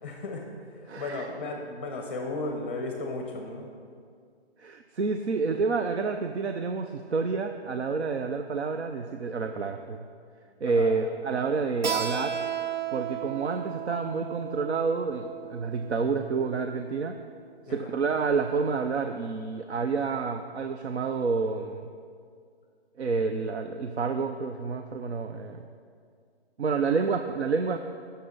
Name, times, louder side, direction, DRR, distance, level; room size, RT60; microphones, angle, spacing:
voice 1, 0.0-3.7 10.6-11.0 17.7-18.0, left 2 dB, 10° left, 2 dB, 0.7 m, -35 dB
voice 2, 0.9-1.3 4.6-10.1 10.6-12.4 12.9-17.2 17.7-21.9 23.0-25.7 26.6-27.8, right 4 dB, 80° right, 6 dB, 0.7 m, -29 dB
Keyboard (musical), 11.8-17.1, right 9 dB, 45° right, 0.5 m, -35 dB
17.5 x 6.8 x 4.0 m, 2.2 s
hypercardioid pair, 170°, 33 cm